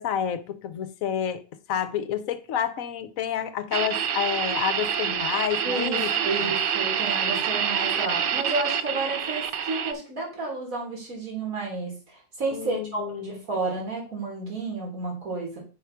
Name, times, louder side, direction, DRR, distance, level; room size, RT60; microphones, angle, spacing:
voice 1, 0.0-1.4 1.7-6.5 12.5-13.4, left 9 dB, 75° left, 1.1 m, -29 dB
sound 1, 3.7-9.9, right 8 dB, 60° right, 0.6 m, -27 dB
voice 2, 5.6-15.6, right 3 dB, 75° right, 3.2 m, -31 dB
5.5 x 4.8 x 5.7 m
omnidirectional pair, 1.5 m